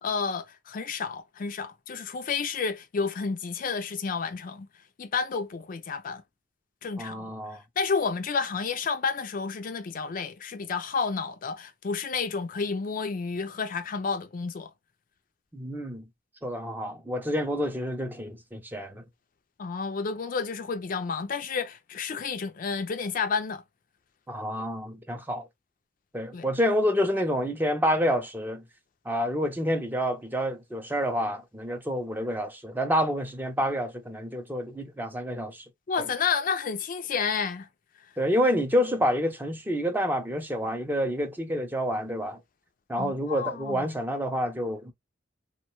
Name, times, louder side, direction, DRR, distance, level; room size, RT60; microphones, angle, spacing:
voice 1, 0.0-4.7 5.0-6.2 6.8-7.3 7.8-14.7 19.6-23.6 26.3-26.5 35.9-37.7 43.0-43.9, left 5 dB, 45° left, 0.4 m, -30 dB
voice 2, 7.0-7.6 15.5-16.1 16.4-19.0 24.3-25.5 26.1-28.6 29.1-35.6 36.0-36.1 38.2-42.4 42.9-44.9, equal, 10° right, 0.5 m, -28 dB
3.0 x 2.2 x 2.9 m
head